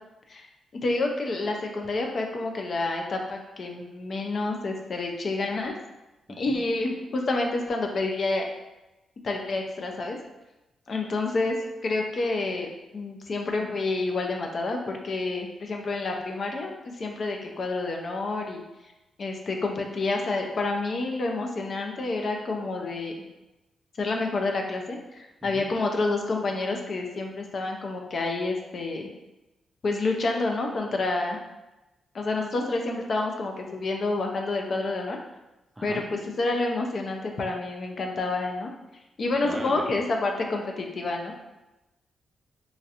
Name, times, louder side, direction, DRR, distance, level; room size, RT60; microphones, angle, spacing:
voice 1, 0.8-5.7 6.4-8.4 9.2-10.2 10.9-11.6 11.8-12.7 12.9-18.6 19.2-23.1 24.0-29.1 29.8-31.4 32.1-35.2 35.8-38.7 39.2-41.3, left 3 dB, 50° left, 2 dB, 0.5 m, -28 dB
voice 2, 6.3-6.6 25.4-25.7 35.8-36.0 39.4-39.8, right 1 dB, 10° right, 2 dB, 0.4 m, -38 dB
3.1 x 2.4 x 2.8 m, 1.0 s
cardioid pair, 95°, 0 cm